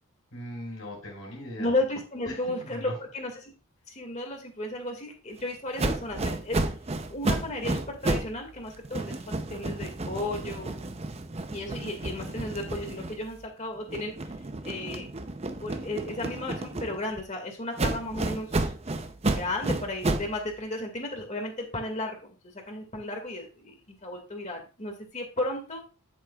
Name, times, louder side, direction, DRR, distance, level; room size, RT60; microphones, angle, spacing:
voice 1, 0.3-1.7 2.3-2.9, left 1 dB, 75° left, -2 dB, 4.5 m, -39 dB
voice 2, 1.6-3.5 3.9-6.6 7.1-10.8 11.5-14.1 14.6-15.1 15.6-18.7 19.3-25.8, left 1 dB, 30° left, 3 dB, 2.1 m, -34 dB
sound 1, 5.8-8.4 8.7-13.5 13.9-17.2 17.8-20.4, right 2 dB, 30° right, 0.6 m, -31 dB
9.7 x 8.3 x 2.4 m, 0.33 s
head